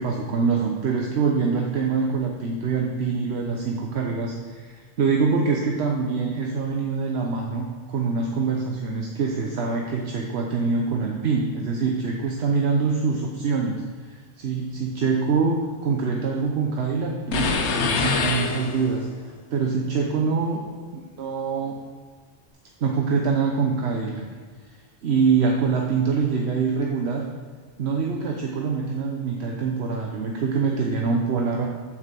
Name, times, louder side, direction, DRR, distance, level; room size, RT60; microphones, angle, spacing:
voice 1, 0.0-19.1 19.5-20.6 20.9-21.8 22.8-24.3 24.7-27.3 27.8-31.7, right 5 dB, 70° right, 0 dB, 1.1 m, -25 dB
sound 1, 17.3-19.1, left 5 dB, 85° left, 1.1 m, -25 dB
7.7 x 6.0 x 6.8 m, 1.5 s
omnidirectional pair, 1.1 m